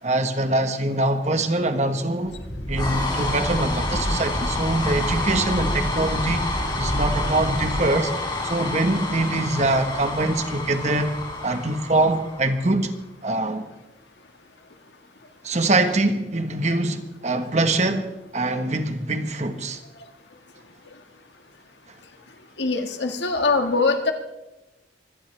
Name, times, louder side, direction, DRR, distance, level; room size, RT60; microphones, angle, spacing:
voice 1, 0.0-2.4 2.7-8.1 8.4-11.1 11.4-12.9 13.2-13.7 15.4-19.8, right 2 dB, 40° right, 1.3 m, -23 dB
sound 1, 2.3-12.7, left 1 dB, 25° left, 3.5 m, -27 dB
voice 2, 22.6-24.1, left 3 dB, 80° left, 1.7 m, -22 dB
24.0 x 17.0 x 3.4 m
head